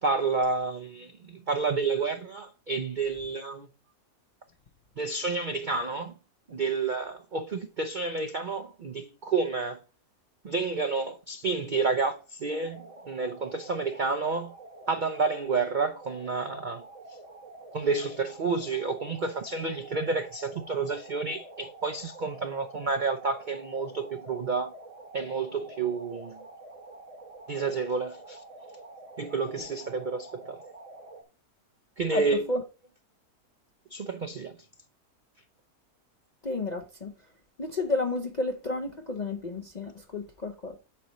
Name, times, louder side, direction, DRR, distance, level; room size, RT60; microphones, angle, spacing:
voice 1, 0.0-3.7 5.0-6.1 6.5-9.8 10.4-14.5 14.9-16.8 17.7-24.7 25.1-26.4 27.5-28.4 29.2-30.6 32.0-32.4 33.9-34.6, right 4 dB, 65° right, 0.4 m, -30 dB
sound 1, 12.5-31.2, right 2 dB, 25° right, 0.9 m, -48 dB
voice 2, 32.1-32.6 36.4-37.1 37.6-40.8, left 2 dB, 45° left, 0.5 m, -31 dB
8.7 x 6.4 x 3.0 m
omnidirectional pair, 1.7 m